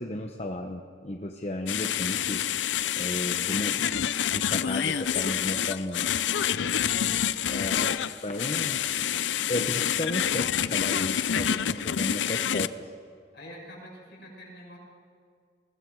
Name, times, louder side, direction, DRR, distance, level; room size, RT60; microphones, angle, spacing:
voice 1, 0.0-2.4 3.0-6.1 7.5-8.8 9.5-12.9, left 1 dB, 35° left, 3 dB, 1.0 m, -34 dB
sound 1, 1.7-12.7, left 9 dB, 90° left, 0.6 m, -27 dB
voice 2, 11.3-12.5 13.3-14.8, equal, 60° left, -2 dB, 6.8 m, -46 dB
30.0 x 21.0 x 4.8 m, 2.2 s
head